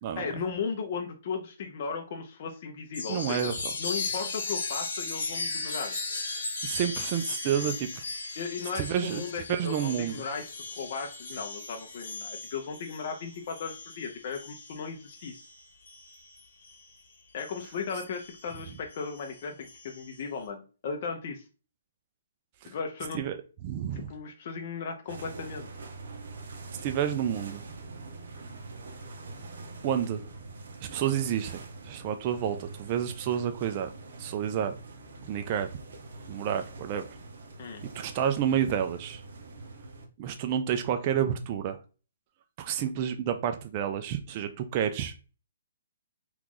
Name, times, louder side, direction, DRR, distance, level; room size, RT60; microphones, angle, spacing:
voice 1, 0.2-3.5 3.8-5.9 8.4-15.5 17.3-21.4 22.6-23.2 23.9-25.7 37.6-37.8, left 5 dB, 40° left, 0.6 m, -36 dB
Chime, 2.9-16.9 17.4-20.2, left 3 dB, 65° left, 1.3 m, -37 dB
voice 2, 3.1-3.5 6.6-7.9 8.8-9.2 9.5-10.2 22.6-22.7 23.1-24.1 26.8-27.6 29.8-30.2 30.8-33.9 34.2-34.7 35.3-35.7 36.3-37.1 37.9-39.2 40.2-41.8 42.6-45.1, right 9 dB, 30° right, 0.3 m, -29 dB
sound 1, 25.1-40.1, right 3 dB, 60° right, 0.9 m, -44 dB
2.9 x 2.5 x 3.7 m
hypercardioid pair, 165°, 0 cm